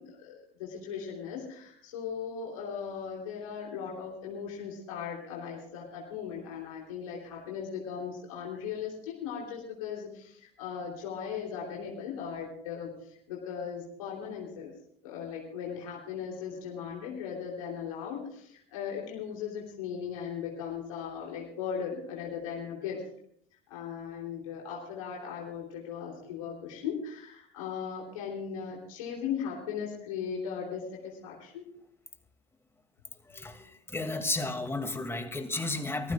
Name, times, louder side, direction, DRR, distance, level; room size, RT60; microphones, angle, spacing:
voice 1, 0.0-14.7 15.0-23.0 23.7-31.6, left 7 dB, 80° left, -3 dB, 3.4 m, -38 dB
voice 2, 33.3-36.1, left 2 dB, 15° left, 6 dB, 2.5 m, -33 dB
24.0 x 15.0 x 2.5 m, 0.64 s
hypercardioid pair, 70°, 17 cm